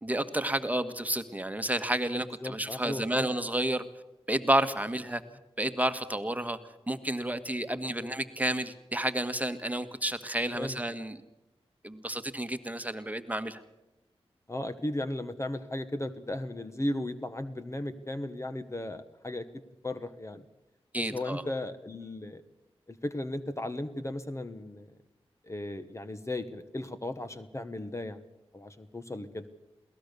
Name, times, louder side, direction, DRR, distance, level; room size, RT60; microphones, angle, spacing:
voice 1, 0.0-3.8 4.3-5.2 5.6-6.6 6.9-11.2 11.8-13.6 20.9-21.4, right 1 dB, 15° right, 9 dB, 1.7 m, -30 dB
voice 2, 2.4-3.3 7.7-8.1 10.5-10.8 14.5-19.5 19.8-20.4 21.1-22.4 22.9-24.9 25.4-28.2 28.5-29.5, left 1 dB, 25° left, 10 dB, 1.3 m, -36 dB
22.0 x 18.0 x 6.9 m, 0.96 s
cardioid pair, 50°, 11 cm